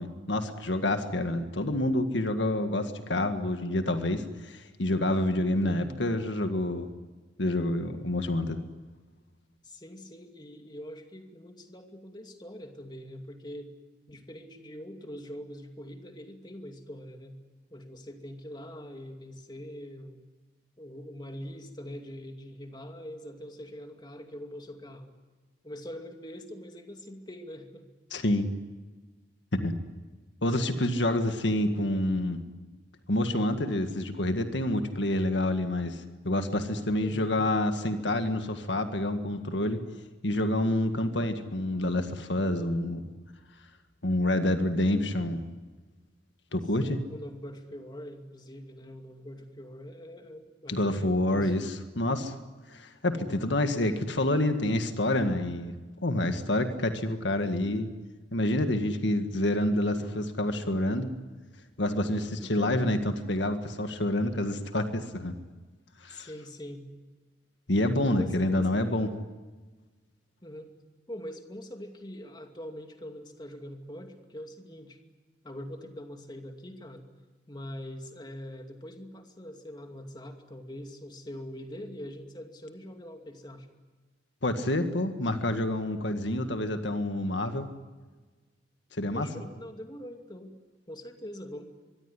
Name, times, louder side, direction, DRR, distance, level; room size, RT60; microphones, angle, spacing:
voice 1, 0.0-6.9 7.4-8.6 28.1-28.5 29.5-29.8 30.4-32.4 33.1-39.8 40.2-43.1 44.0-45.4 46.5-47.0 50.7-52.3 52.7-57.9 58.3-61.1 61.8-65.3 66.0-66.3 67.7-69.1 84.4-87.7 88.9-89.3, left 1 dB, 70° left, 7 dB, 1.8 m, -28 dB
voice 2, 5.6-6.0 9.6-13.7 14.1-17.4 17.7-20.2 20.8-25.1 25.6-27.9 37.0-37.3 45.2-45.3 46.8-51.5 53.2-53.3 62.4-62.9 66.1-66.9 68.2-69.2 70.4-70.7 71.1-75.0 75.4-77.1 77.5-83.7 89.1-90.6 90.9-91.6, equal, 25° left, 5 dB, 2.5 m, -43 dB
24.0 x 23.0 x 9.8 m, 1.3 s
head